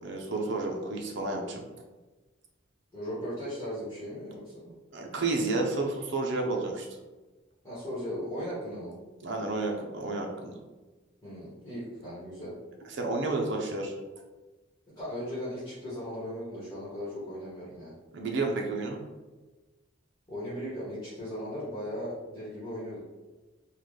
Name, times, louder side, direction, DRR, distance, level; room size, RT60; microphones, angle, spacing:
voice 1, 0.0-1.6 4.9-6.9 9.2-10.5 12.9-13.9 18.1-19.0, right 2 dB, 65° right, 1 dB, 0.6 m, -31 dB
voice 2, 2.9-4.7 7.6-8.9 11.2-12.5 15.0-17.9 20.3-23.0, equal, 20° left, -10 dB, 1.1 m, -37 dB
3.8 x 2.3 x 3.2 m, 1.2 s
head